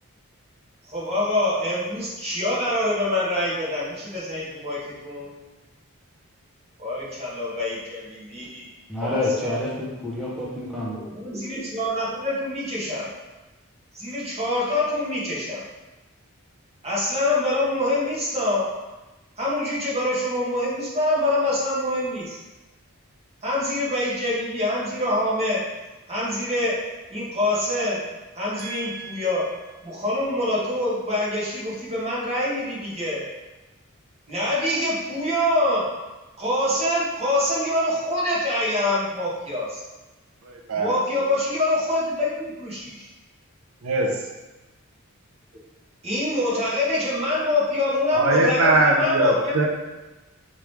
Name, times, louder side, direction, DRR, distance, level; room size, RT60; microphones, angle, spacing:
voice 1, 0.9-5.3 6.8-8.7 9.0-9.6 10.9-13.1 13.9-15.6 16.8-18.7 19.4-22.4 23.4-25.6 26.1-26.8 27.1-28.0 28.3-29.5 29.8-33.2 34.3-35.8 36.4-39.8 40.8-43.1 46.0-49.5, left 1 dB, 30° right, -7 dB, 1.4 m, -25 dB
voice 2, 8.9-11.0, left 2 dB, ahead, -7 dB, 0.6 m, -28 dB
voice 3, 28.6-29.2 40.4-41.0 43.8-44.3 48.1-49.7, right 2 dB, 80° right, 0 dB, 0.6 m, -22 dB
4.9 x 3.1 x 3.4 m, 1.1 s
head